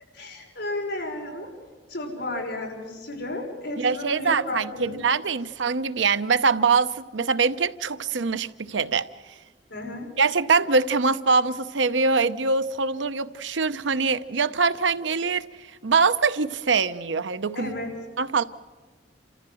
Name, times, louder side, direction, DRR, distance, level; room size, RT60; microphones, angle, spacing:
voice 1, 0.1-1.5 1.9-5.0 9.7-10.1 17.5-17.9, left 2 dB, 65° left, -1 dB, 6.0 m, -33 dB
voice 2, 3.8-9.1 10.2-15.5 15.8-17.7 18.2-18.4, right 4 dB, 90° right, 12 dB, 0.8 m, -23 dB
28.0 x 14.5 x 7.8 m, 1.4 s
head